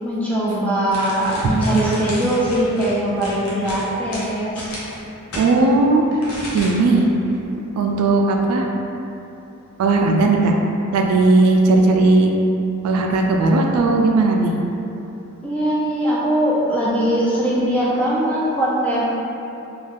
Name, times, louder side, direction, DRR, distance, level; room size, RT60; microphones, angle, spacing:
voice 1, 0.0-4.7 15.4-19.0, right 1 dB, 5° left, -7 dB, 0.4 m, -21 dB
sound 1, 0.9-5.5 6.2-7.0 7.3-7.5, left 1 dB, 75° left, 0.7 m, -33 dB
voice 2, 5.3-6.2 6.5-7.1 7.8-8.7 9.8-10.5 10.9-12.3 12.8-14.5, right 3 dB, 85° right, 3 dB, 0.3 m, -16 dB
2.4 x 2.2 x 3.3 m, 2.9 s
head